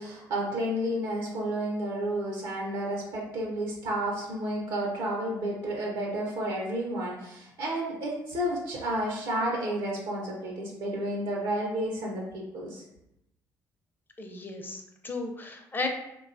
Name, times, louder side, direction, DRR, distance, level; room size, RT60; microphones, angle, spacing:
voice 1, 0.0-12.8, right 1 dB, 75° right, -2 dB, 0.6 m, -31 dB
voice 2, 14.2-15.9, left 3 dB, 25° left, 4 dB, 0.5 m, -35 dB
2.9 x 2.2 x 2.5 m, 0.83 s
supercardioid pair, 65°, 8 cm